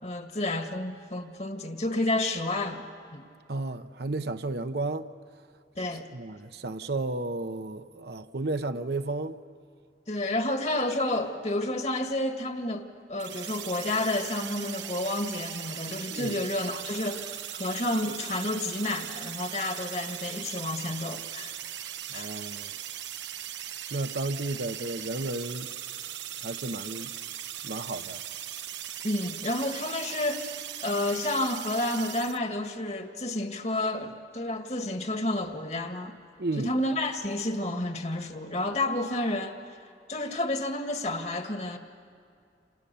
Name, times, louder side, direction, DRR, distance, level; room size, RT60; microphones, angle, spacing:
voice 1, 0.0-2.8 3.1-3.2 5.8-6.1 10.1-21.6 22.1-22.3 29.0-30.6 30.8-36.1 36.6-39.6 40.1-41.8, left 1 dB, 40° left, 1.8 m, -30 dB
voice 2, 3.5-5.1 6.1-9.4 16.1-16.4 22.1-22.7 23.9-25.7 26.4-27.1 27.6-28.2 36.4-36.7, right 2 dB, 65° right, 0.9 m, -33 dB
sound 1, 13.2-32.4, right 11 dB, 85° right, 0.9 m, -39 dB
29.0 x 28.5 x 6.9 m
head